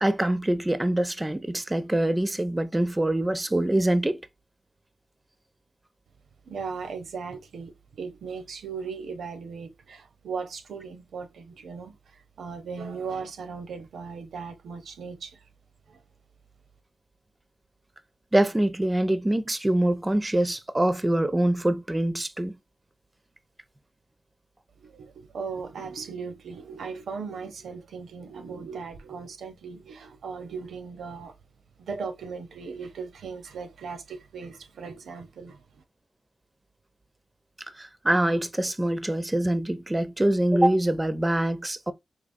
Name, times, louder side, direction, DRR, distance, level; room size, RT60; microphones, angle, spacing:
voice 1, 0.0-4.2 18.3-22.5 37.8-41.9, right 1 dB, 20° right, 0.5 m, -24 dB
voice 2, 6.5-15.4 15.9-16.0 24.8-31.3 31.8-35.6, right 5 dB, 85° right, 0.6 m, -38 dB
3.9 x 2.9 x 2.5 m
cardioid pair, 70°, 0 cm